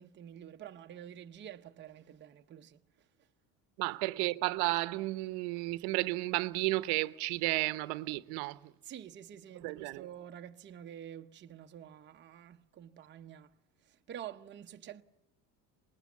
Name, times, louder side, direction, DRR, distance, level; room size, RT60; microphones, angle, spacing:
voice 1, 0.0-2.8 4.1-4.3 8.8-13.5 13.8-15.0, right 10 dB, 30° right, 0.8 m, -48 dB
voice 2, 3.8-8.7 9.6-10.1, right 21 dB, 85° right, 0.9 m, -33 dB
26.0 x 20.0 x 8.4 m
cardioid pair, 160°, 37 cm